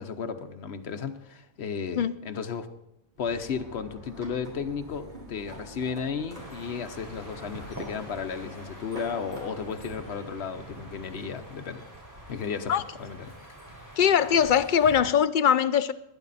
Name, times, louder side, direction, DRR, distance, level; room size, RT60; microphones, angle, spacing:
voice 1, 0.0-2.7 3.2-11.8 12.3-12.7 13.0-13.3, left 6 dB, 80° left, 1.2 m, -34 dB
sound 1, 3.1-9.9, right 1 dB, 75° right, 4.3 m, -50 dB
sound 2, 3.3-10.2, equal, 45° right, 3.5 m, -47 dB
sound 3, 6.3-15.0, right 1 dB, 15° right, 3.8 m, -45 dB
voice 2, 14.0-15.9, left 8 dB, 55° left, 0.7 m, -21 dB
19.5 x 10.0 x 4.1 m
omnidirectional pair, 1.1 m